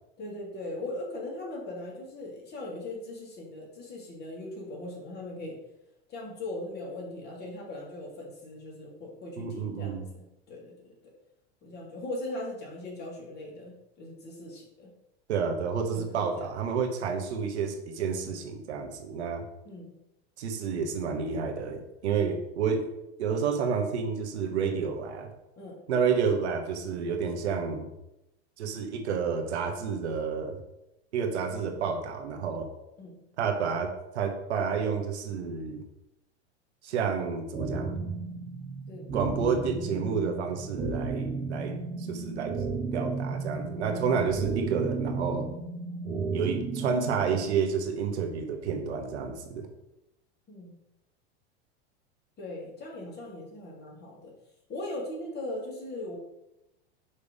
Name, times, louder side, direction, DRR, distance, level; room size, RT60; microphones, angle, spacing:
voice 1, 0.2-5.6 6.1-10.9 11.6-14.9 15.9-16.5 19.6-19.9 25.6-25.8 33.0-33.2 38.9-39.1 50.5-50.7 52.4-54.3 54.7-56.2, left 1 dB, 30° left, -3 dB, 2.4 m, -39 dB
voice 2, 9.4-10.0 15.3-19.4 20.4-22.9 23.2-25.3 25.9-27.9 28.6-30.6 31.1-32.7 33.4-35.8 36.8-38.0 39.1-42.5 42.9-45.5 46.3-49.7, right 6 dB, 80° right, 4 dB, 1.2 m, -30 dB
sound 1, 37.5-47.5, right 4 dB, 15° right, 0.9 m, -33 dB
5.6 x 3.3 x 5.3 m, 0.89 s
hypercardioid pair, 105°, 33 cm